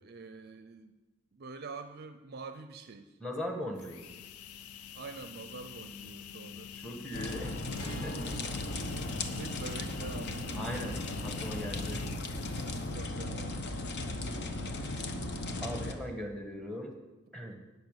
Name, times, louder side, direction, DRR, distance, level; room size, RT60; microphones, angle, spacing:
voice 1, 0.0-1.0 1.3-3.2 4.9-7.1 7.4-7.5 8.7-11.5 12.2-12.5 12.9-13.6, right 4 dB, 45° right, 9 dB, 0.5 m, -47 dB
voice 2, 3.2-4.1 6.8-7.5 8.0-8.2 10.5-12.0 15.6-16.9 17.3-17.6, equal, ahead, 4 dB, 1.4 m, -39 dB
sound 1, 3.8-13.1, left 8 dB, 80° left, 0.5 m, -48 dB
sound 2, 7.1-15.9, left 2 dB, 50° left, 1.0 m, -36 dB
Acoustic guitar, 7.7-13.2, right 2 dB, 25° left, 4.8 m, -50 dB
11.5 x 5.6 x 9.0 m, 1.2 s
head